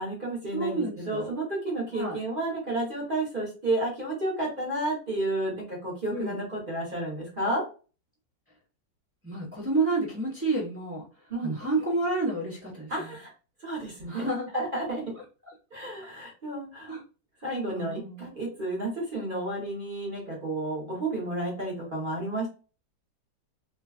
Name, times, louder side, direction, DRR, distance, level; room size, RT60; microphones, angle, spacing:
voice 1, 0.0-7.6 11.3-11.6 12.9-13.3 13.6-14.3 14.5-15.0 15.7-16.9 17.4-22.5, right 2 dB, 35° right, -3 dB, 1.0 m, -31 dB
voice 2, 0.5-1.3 1.9-2.2 6.1-6.4 9.2-11.0 11.4-13.1 14.1-14.5 16.9-17.0 17.7-18.3, right 2 dB, 15° right, -6 dB, 0.5 m, -30 dB
3.2 x 2.4 x 2.4 m, 0.35 s
omnidirectional pair, 2.0 m